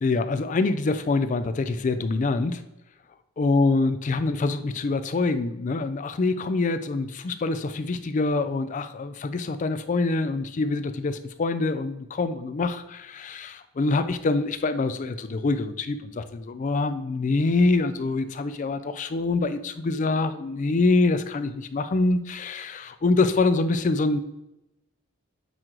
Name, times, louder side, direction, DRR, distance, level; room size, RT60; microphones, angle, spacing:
voice 1, 0.0-2.6 3.4-24.2, left 3 dB, 35° left, 11 dB, 0.3 m, -25 dB
8.9 x 3.0 x 3.8 m, 0.91 s
head